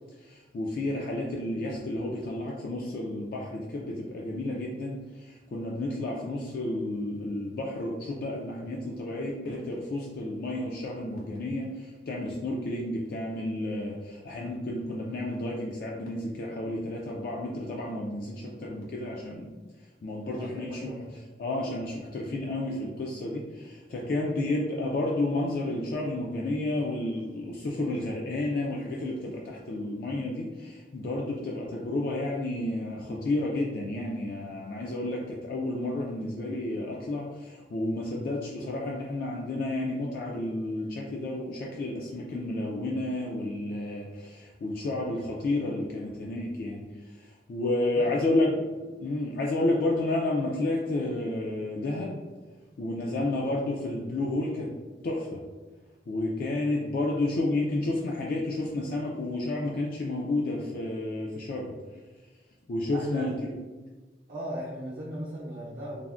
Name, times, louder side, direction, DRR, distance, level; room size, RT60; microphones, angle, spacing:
voice 1, 0.2-19.5 20.0-20.9 21.4-48.5 49.0-52.2 52.8-54.7 55.0-55.4 56.1-61.7 62.7-63.6, left 2 dB, 55° left, -2 dB, 0.3 m, -31 dB
voice 2, 20.2-21.1 47.8-48.4 62.9-63.4 64.3-66.1, right 1 dB, 70° right, -9 dB, 0.6 m, -38 dB
3.3 x 2.1 x 2.4 m, 1.3 s
head